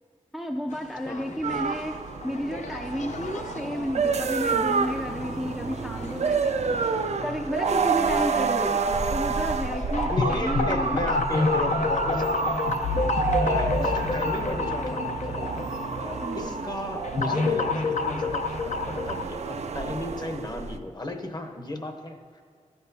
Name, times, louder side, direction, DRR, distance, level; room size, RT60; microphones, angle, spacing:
voice 1, 0.3-6.9 7.2-11.0 12.9-13.4 16.2-16.6, equal, ahead, 2 dB, 0.4 m, -32 dB
sound 1, 0.7-19.2, left 3 dB, 70° left, 0.7 m, -30 dB
sound 2, 1.4-20.8, right 5 dB, 60° right, 0.4 m, -29 dB
voice 2, 10.1-12.5 13.4-22.4, left 2 dB, 35° left, 5 dB, 0.8 m, -35 dB
13.5 x 8.0 x 2.7 m, 2.2 s
wide cardioid pair, 95°, 13 cm